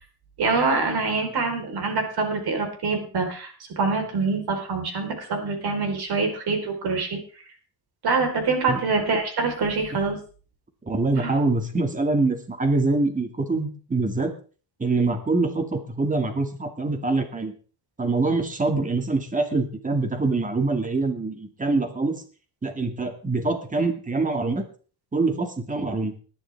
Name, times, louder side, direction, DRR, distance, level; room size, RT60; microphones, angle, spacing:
voice 1, 0.4-7.2 8.0-10.2 11.1-11.4, right 4 dB, 70° right, 4 dB, 4.3 m, -25 dB
voice 2, 10.9-14.3 14.8-17.5 18.0-22.2 22.6-24.6 25.1-26.1, right 3 dB, 20° right, 6 dB, 2.2 m, -24 dB
20.0 x 10.5 x 3.5 m, 0.39 s
cardioid pair, 140°, 39 cm